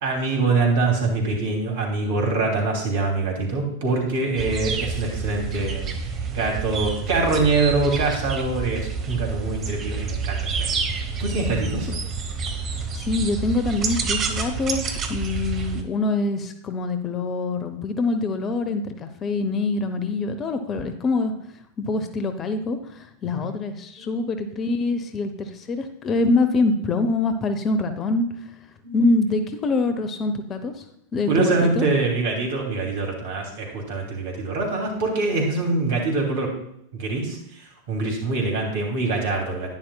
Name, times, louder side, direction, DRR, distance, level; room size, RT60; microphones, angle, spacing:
voice 1, 0.0-10.8 11.2-11.9 23.4-23.5 24.0-24.1 24.7-24.8 28.8-29.0 31.3-36.5 37.0-39.7, right 3 dB, 55° right, 1 dB, 2.7 m, -24 dB
sound 1, 4.4-15.8, right 5 dB, 30° right, 1.1 m, -28 dB
voice 2, 12.9-21.3 21.8-28.3 28.9-30.8 31.1-31.9, left 3 dB, 25° left, 9 dB, 0.7 m, -25 dB
10.5 x 10.0 x 2.3 m, 0.76 s
figure-of-eight pair, 90°, 0 cm